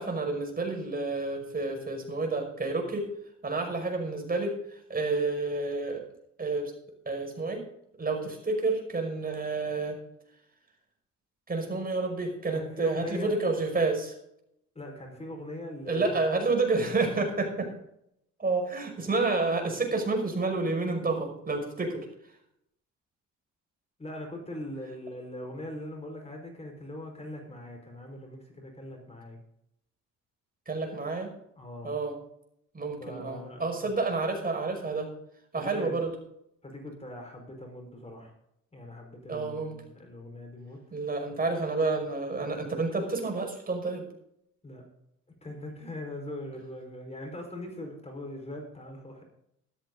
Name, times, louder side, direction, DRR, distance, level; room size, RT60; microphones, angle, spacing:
voice 1, 0.0-3.1 3.4-6.0 6.4-6.7 7.1-7.6 8.0-10.0 11.5-14.1 15.9-17.7 18.4-22.0 30.7-31.3 31.8-32.1 32.7-35.1 35.5-36.1 39.3-39.7 40.9-44.1, right 3 dB, 30° right, 3 dB, 5.7 m, -29 dB
voice 2, 12.5-13.4 14.7-16.1 24.0-29.4 31.6-32.0 33.0-33.9 35.6-36.0 36.6-38.3 38.7-41.0 44.6-44.8 45.4-49.2, left 1 dB, 20° left, 2 dB, 5.0 m, -41 dB
14.0 x 13.0 x 3.9 m, 0.76 s
cardioid pair, 90°, 30 cm